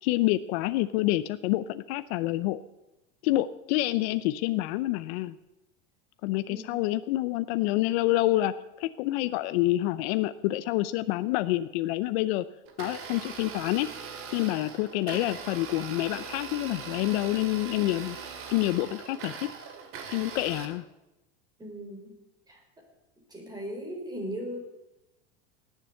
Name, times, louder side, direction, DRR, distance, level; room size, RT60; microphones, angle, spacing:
voice 1, 0.0-2.6 3.2-5.4 6.2-8.5 8.8-12.4 12.8-13.9 14.3-18.2 18.5-19.5 20.1-20.8, left 16 dB, 60° left, 13 dB, 0.7 m, -27 dB
voice 2, 6.5-6.8 21.6-22.1 22.5-22.9 23.3-24.6, equal, 10° right, 1 dB, 4.0 m, -38 dB
Domestic sounds home sounds, 12.7-20.7, right 6 dB, 35° right, 2.3 m, -41 dB
18.5 x 7.4 x 7.7 m, 0.97 s
supercardioid pair, 140°, 36 cm